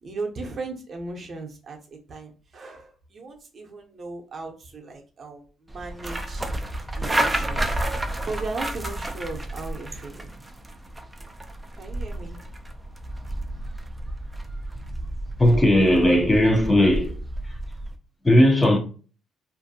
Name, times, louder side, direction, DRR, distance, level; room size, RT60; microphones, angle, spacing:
voice 1, 0.0-1.8 2.1-6.5 6.9-7.8 8.2-10.3 11.7-12.4, right 3 dB, 50° right, 0.7 m, -37 dB
sound 1, 5.7-18.0, right 1 dB, 15° right, 0.4 m, -31 dB
voice 2, 15.4-17.1 18.2-18.8, left 1 dB, 20° left, 0.7 m, -17 dB
2.5 x 2.2 x 2.7 m
supercardioid pair, 70°, 0 cm